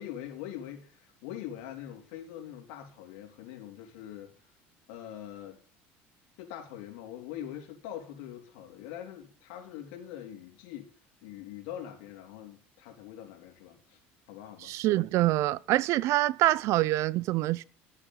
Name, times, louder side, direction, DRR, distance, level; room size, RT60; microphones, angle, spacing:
voice 1, 0.0-4.3 4.9-5.6 6.4-10.9 11.2-14.0 14.3-14.7, left 11 dB, 85° left, 3.7 m, -43 dB
voice 2, 14.6-17.6, right 16 dB, 60° right, 0.5 m, -25 dB
13.0 x 8.4 x 5.6 m
cardioid pair, 120°, 6 cm